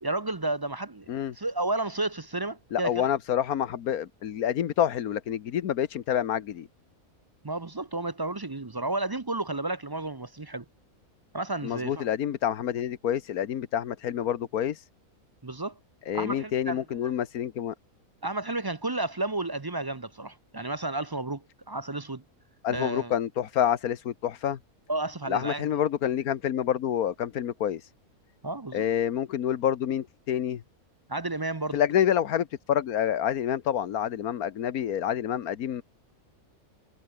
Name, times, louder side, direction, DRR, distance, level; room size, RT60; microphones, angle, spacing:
voice 1, 0.0-1.1 1.3-3.1 7.4-10.6 11.3-12.1 15.4-15.8 16.1-17.1 18.2-22.2 22.7-23.1 24.9-25.7 28.4-28.8 31.1-31.8, right 2 dB, 25° right, 0.6 m, -32 dB
voice 2, 2.7-6.7 11.6-14.8 16.1-17.7 22.6-24.6 25.3-27.9 28.7-30.6 31.7-35.8, left 9 dB, 80° left, 1.5 m, -28 dB
omnidirectional pair, 1.5 m